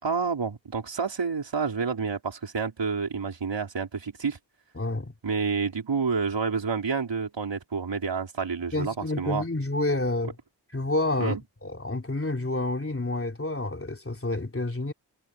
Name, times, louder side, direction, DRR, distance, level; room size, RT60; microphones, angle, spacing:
voice 1, 0.0-4.4 5.2-9.4 11.2-11.4, right 5 dB, 80° right, 4.5 m, -29 dB
voice 2, 4.8-5.1 8.7-10.3 10.7-14.9, left 2 dB, 30° left, 3.2 m, -29 dB
wide cardioid pair, 100°, 43 cm